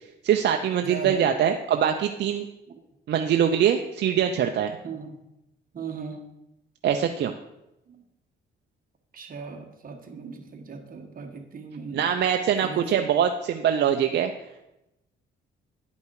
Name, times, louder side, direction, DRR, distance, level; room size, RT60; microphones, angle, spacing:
voice 1, 0.2-2.4 3.1-4.7 6.8-7.3 11.9-14.3, right 9 dB, 60° right, 5 dB, 0.6 m, -23 dB
voice 2, 0.8-1.2 4.8-5.2 5.7-6.2 7.9-8.0 9.1-12.1 12.6-13.1, right 5 dB, 45° right, 4 dB, 1.5 m, -38 dB
10.5 x 5.3 x 4.8 m, 0.92 s
cardioid pair, 90°, 20 cm